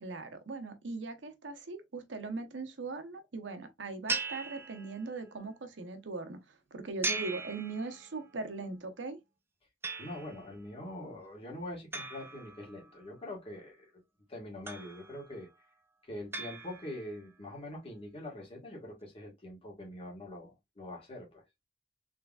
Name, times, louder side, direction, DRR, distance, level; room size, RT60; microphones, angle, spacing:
voice 1, 0.0-9.2, right 3 dB, 75° right, 0.8 m, -40 dB
sound 1, 4.1-5.3 7.0-8.3 9.8-10.5 11.9-13.1 14.7-15.4 16.3-17.2, right 3 dB, 15° right, 0.5 m, -39 dB
voice 2, 10.0-14.0 14.3-15.5 16.0-21.4, left 1 dB, 30° left, 1.6 m, -44 dB
3.7 x 3.3 x 2.3 m
head